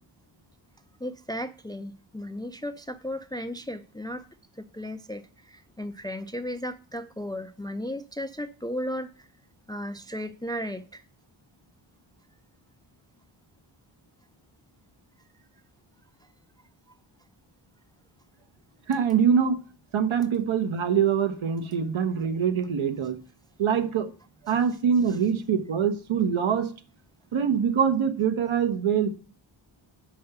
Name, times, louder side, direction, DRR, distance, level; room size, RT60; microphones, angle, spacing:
voice 1, 1.0-4.3 4.6-9.3 9.7-11.0 16.2-16.3 25.1-25.2, equal, 10° left, 0.3 m, -35 dB
voice 2, 18.9-19.6 19.9-23.2 23.6-24.1 24.4-26.7 27.3-29.1, right 7 dB, 75° right, 1.0 m, -24 dB
5.6 x 5.4 x 6.7 m
wide cardioid pair, 95°, 48 cm